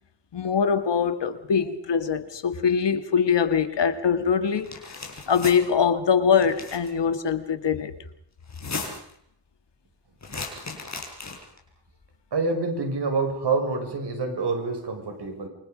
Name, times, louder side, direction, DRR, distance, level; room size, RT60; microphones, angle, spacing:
voice 1, 0.3-4.7 5.3-7.9, left 6 dB, 75° left, 2.0 m, -23 dB
sound 1, 4.6-5.6 6.4-6.9 8.4-9.1 10.2-11.6, left 3 dB, 40° left, 5.8 m, -36 dB
voice 2, 12.3-15.5, right 3 dB, 70° right, 6.1 m, -27 dB
28.0 x 25.5 x 5.2 m
wide cardioid pair, 100°, 42 cm